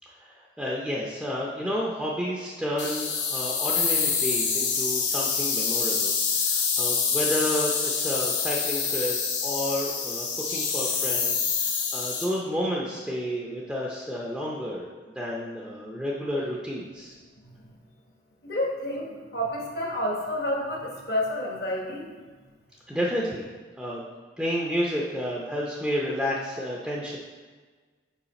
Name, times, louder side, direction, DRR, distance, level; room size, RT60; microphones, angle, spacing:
voice 1, 0.2-9.2 9.4-14.9 15.1-17.2 22.9-23.4 23.8-24.1 24.4-27.2, equal, 5° right, -4 dB, 0.5 m, -31 dB
sound 1, 2.8-12.3, left 5 dB, 80° left, 1.0 m, -26 dB
voice 2, 18.4-22.1, left 1 dB, 55° left, -1 dB, 1.1 m, -30 dB
5.6 x 4.7 x 4.1 m, 1.4 s
head